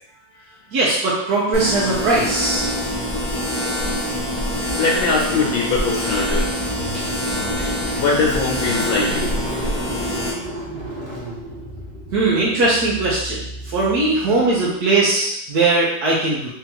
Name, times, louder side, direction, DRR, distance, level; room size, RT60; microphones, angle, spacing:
voice 1, 0.7-2.7 6.9-7.0 7.9-8.0 12.1-16.5, right 3 dB, 60° right, -6 dB, 1.3 m, -19 dB
sound 1, 1.5-10.3, equal, ahead, 1.0 m, -25 dB
voice 2, 4.8-6.5 7.9-9.3, left 4 dB, 80° left, -4 dB, 1.5 m, -21 dB
Car / Engine starting, 5.9-14.7, right 1 dB, 25° right, 0.5 m, -34 dB
3.8 x 3.4 x 2.9 m, 0.74 s
omnidirectional pair, 2.1 m